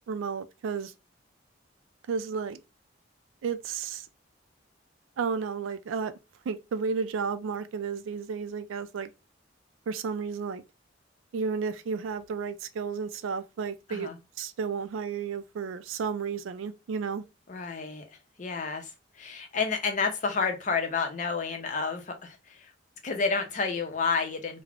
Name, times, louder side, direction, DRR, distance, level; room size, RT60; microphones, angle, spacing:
voice 1, 0.1-0.9 2.1-2.6 3.4-4.0 5.2-6.1 6.5-9.1 9.9-10.6 11.3-14.1 14.4-17.2, right 5 dB, 85° right, 0.3 m, -32 dB
voice 2, 17.5-18.1 18.4-22.7 23.0-24.6, left 5 dB, 40° left, 0.5 m, -30 dB
2.4 x 2.0 x 3.3 m
head